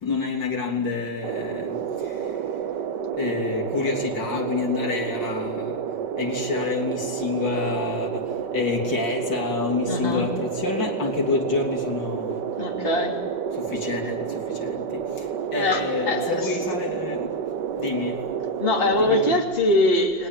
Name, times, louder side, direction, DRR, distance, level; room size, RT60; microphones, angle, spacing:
voice 1, 0.0-2.2 3.2-5.8 6.2-8.2 8.5-12.4 13.5-15.3 15.5-17.3 17.8-18.1 19.0-19.4, left 4 dB, 65° left, 0 dB, 3.9 m, -28 dB
sound 1, 1.2-19.3, right 8 dB, 65° right, 1.6 m, -30 dB
voice 2, 9.9-10.3 12.6-13.2 15.5-16.4 18.6-20.3, left 1 dB, 30° left, 1 dB, 3.2 m, -22 dB
30.0 x 21.0 x 9.1 m, 1.5 s
omnidirectional pair, 2.1 m